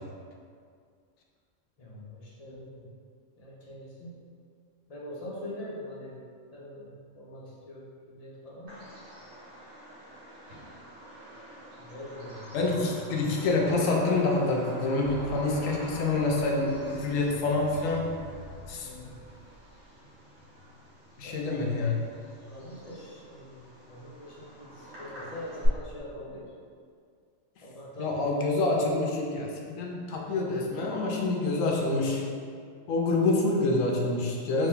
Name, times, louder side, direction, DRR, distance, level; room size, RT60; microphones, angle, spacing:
voice 1, 1.8-2.9 3.4-4.1 4.9-6.2 6.5-6.9 7.1-8.7 11.8-12.9 18.8-19.2 21.2-21.4 22.5-26.5 27.6-28.4, left 1 dB, 40° left, -6 dB, 0.7 m, -43 dB
Bird vocalization bird call bird song, 8.7-25.7, equal, 80° right, 1.7 m, -45 dB
voice 2, 12.5-18.1 18.7-18.9 21.2-22.0 28.0-32.2 32.9-34.7, left 2 dB, 90° left, 0 dB, 1.0 m, -27 dB
sound 1, 14.0-20.0, equal, 60° right, 0.8 m, -48 dB
3.0 x 2.9 x 3.7 m, 2.2 s
omnidirectional pair, 1.3 m